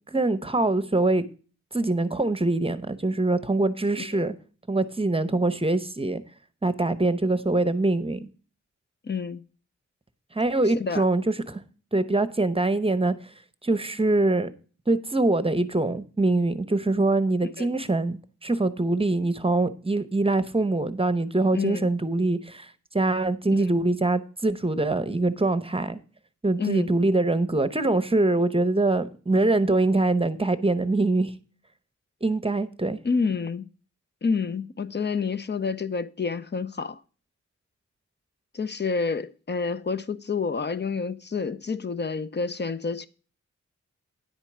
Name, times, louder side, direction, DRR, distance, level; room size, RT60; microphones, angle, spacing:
voice 1, 0.1-1.2 1.7-4.3 4.7-6.2 6.6-8.2 10.3-11.6 11.9-13.1 13.6-14.5 14.9-26.0 26.4-31.3 32.2-33.0, right 2 dB, 20° right, 0.8 m, -24 dB
voice 2, 3.9-4.3 9.0-9.5 10.8-11.0 17.6-17.7 21.5-21.9 23.5-23.7 26.6-26.9 33.0-33.7 34.2-37.0 38.5-43.1, left 5 dB, 35° left, 0.7 m, -28 dB
10.0 x 4.5 x 7.3 m
wide cardioid pair, 75°, 29 cm